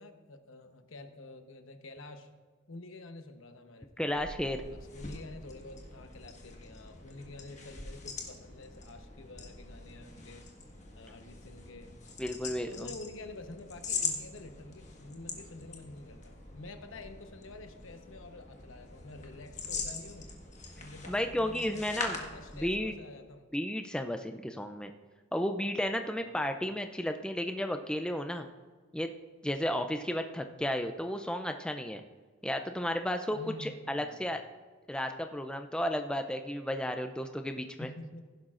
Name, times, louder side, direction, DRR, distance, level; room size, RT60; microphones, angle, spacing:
voice 1, 0.0-2.3 2.7-4.2 4.7-10.5 10.9-11.9 12.7-20.3 20.8-23.5 26.2-26.7 33.3-34.2 37.8-38.2, left 2 dB, 75° left, 6 dB, 1.0 m, -48 dB
sound 1, 4.0-23.0, left 4 dB, 35° left, 1.5 m, -43 dB
voice 2, 4.0-4.6 12.2-12.9 21.1-22.2 22.6-22.9 23.5-24.9 25.3-28.5 28.9-29.1 29.4-32.0 32.4-34.4 34.9-37.9, left 1 dB, 5° left, 6 dB, 0.4 m, -33 dB
15.5 x 11.5 x 2.5 m, 1.4 s
head